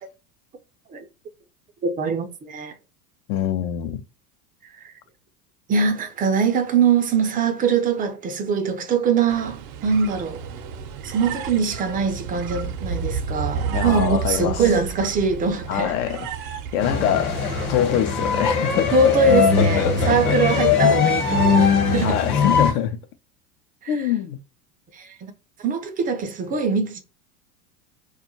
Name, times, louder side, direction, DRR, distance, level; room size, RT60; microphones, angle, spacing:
voice 1, 1.8-2.7 4.8-4.9 5.7-10.4 11.0-16.0 17.1-17.2 18.9-22.2 23.8-23.9 24.9-25.3 25.6-27.0, right 4 dB, 20° right, 0.4 m, -22 dB
voice 2, 3.3-4.0 13.7-14.6 15.7-16.3 16.7-17.4 17.7-19.1 19.6-20.4 20.7-20.8 22.0-23.0 23.9-24.4, left 10 dB, 60° left, 0.6 m, -24 dB
sound 1, 9.3-18.0, right 5 dB, 65° right, 0.6 m, -31 dB
sound 2, 16.8-22.7, left 5 dB, 45° left, 1.1 m, -20 dB
2.4 x 2.1 x 2.9 m
hypercardioid pair, 100°, 46 cm